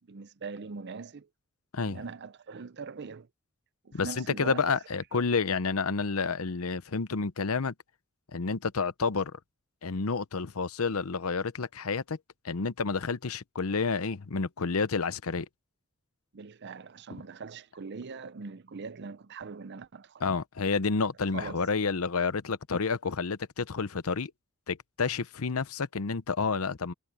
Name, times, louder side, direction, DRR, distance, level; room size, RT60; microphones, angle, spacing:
voice 1, 0.1-1.3 1.8-3.3 3.8-4.7 16.3-20.2 21.3-21.6, right 5 dB, 50° right, 0.6 m, -41 dB
voice 2, 3.9-7.7 8.3-9.4 9.8-12.2 12.4-15.5 20.2-24.3 24.7-26.9, left 4 dB, 80° left, 0.8 m, -30 dB
head